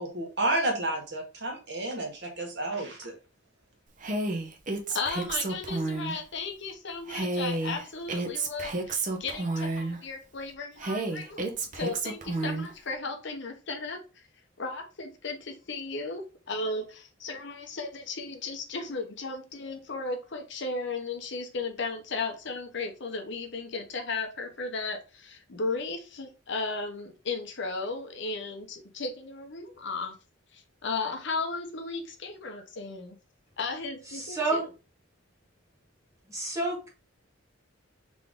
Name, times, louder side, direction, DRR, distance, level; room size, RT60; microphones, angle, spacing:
voice 1, 0.0-3.1, right 2 dB, 55° right, 1.6 m, -31 dB
Female speech woman speaking, 4.0-6.2 7.1-10.0 10.8-12.7, right 2 dB, 40° right, 0.7 m, -31 dB
voice 2, 4.9-14.3 14.6-30.1 30.5-33.2 33.6-34.6, left 3 dB, 60° left, 0.9 m, -35 dB
voice 3, 34.1-34.6 36.3-36.9, right 2 dB, 15° right, 1.7 m, -30 dB
3.7 x 3.6 x 3.7 m
head